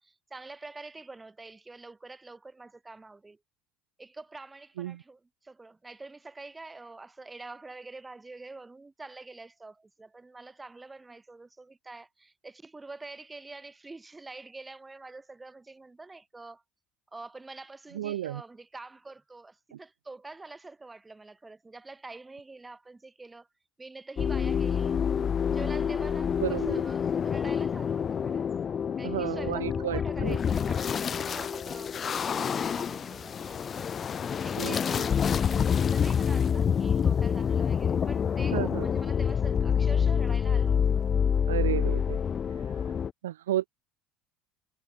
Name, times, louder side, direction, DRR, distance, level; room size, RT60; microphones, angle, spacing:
voice 1, 0.0-3.4 4.0-16.6 17.1-23.5 23.8-25.0 25.5-28.5 29.0-33.9 34.4-41.2, right 3 dB, 15° right, 6.1 m, -46 dB
voice 2, 17.9-18.4 26.4-26.8 29.0-30.4 34.6-34.7 38.5-38.9 41.5-42.2 43.2-43.7, right 12 dB, 75° right, 0.5 m, -32 dB
sound 1, 24.2-43.1, left 7 dB, 35° left, 0.5 m, -27 dB
figure-of-eight pair, 65°, 0 cm